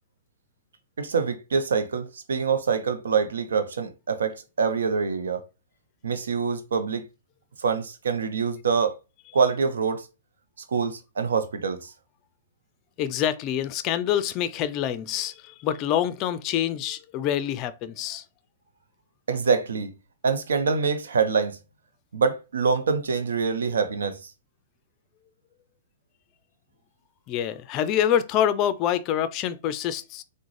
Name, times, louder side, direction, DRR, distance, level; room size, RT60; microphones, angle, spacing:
voice 1, 1.0-5.4 6.0-7.1 7.6-8.9 9.3-10.1 10.7-11.9 19.3-19.9 20.2-21.6 22.1-24.3, right 5 dB, 80° right, 0.6 m, -25 dB
voice 2, 13.0-18.2 27.3-30.2, left 10 dB, 35° left, 0.4 m, -26 dB
3.6 x 2.1 x 3.1 m
hypercardioid pair, 125°, 0 cm